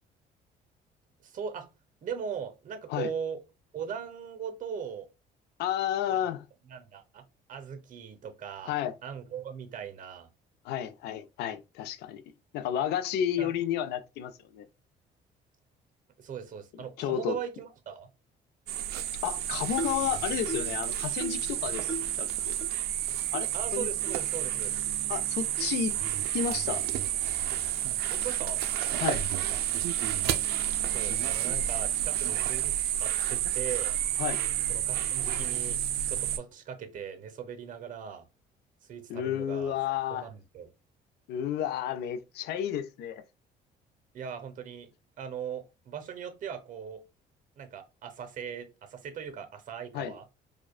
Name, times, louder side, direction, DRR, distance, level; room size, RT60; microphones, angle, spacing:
voice 1, 1.2-1.7 2.0-3.4 3.7-5.1 6.1-6.2 6.6-7.2 7.5-10.3 13.4-13.5 16.2-18.1 23.5-24.8 28.1-28.6 30.2-30.4 30.9-33.9 34.7-35.8 36.1-38.3 38.8-39.8 40.1-40.7 44.1-44.9 45.2-47.0 47.6-50.3, right 7 dB, 50° right, 0.8 m, -39 dB
voice 2, 5.6-6.5 8.7-8.9 10.6-14.7 17.0-17.4 19.2-22.6 23.3-23.9 25.1-25.9 26.3-26.9 29.0-29.2 34.2-34.4 39.1-40.3 41.3-43.2 49.9-50.1, left 10 dB, 75° left, 0.4 m, -32 dB
sound 1, 18.7-36.4, right 11 dB, 70° right, 0.4 m, -30 dB
sound 2, 19.8-20.1 20.5-20.8 21.2-21.5 21.9-22.2 22.6-22.7 23.3-23.5 24.1-24.2 24.8-24.9 25.6-25.7, left 1 dB, 5° right, 0.8 m, -37 dB
4.8 x 2.2 x 2.3 m
cardioid pair, 110°, 17 cm